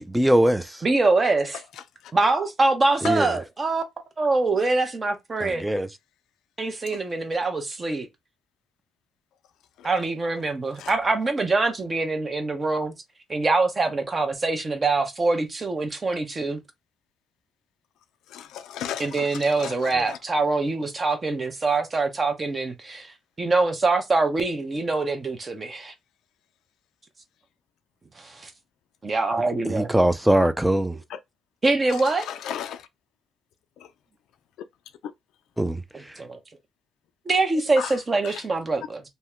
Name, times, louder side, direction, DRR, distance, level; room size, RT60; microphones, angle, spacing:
voice 1, 0.0-0.8 3.0-3.3 5.4-5.9 20.0-20.1 29.6-31.0 35.6-35.8, right 1 dB, 5° right, 0.4 m, -21 dB
voice 2, 0.8-1.6 2.1-3.8 4.2-5.6 6.6-8.1 9.8-12.9 13.3-16.6 19.0-25.9 28.2-28.5 29.0-29.9 31.6-32.3 36.2-36.4 37.3-39.0, right 3 dB, 30° right, 0.8 m, -24 dB
voice 3, 18.3-19.3 19.6-20.2 31.1-31.2 32.3-32.8 37.8-37.9 38.2-38.4, left 10 dB, 85° left, 0.3 m, -34 dB
2.7 x 2.1 x 3.5 m
cardioid pair, 90°, 0 cm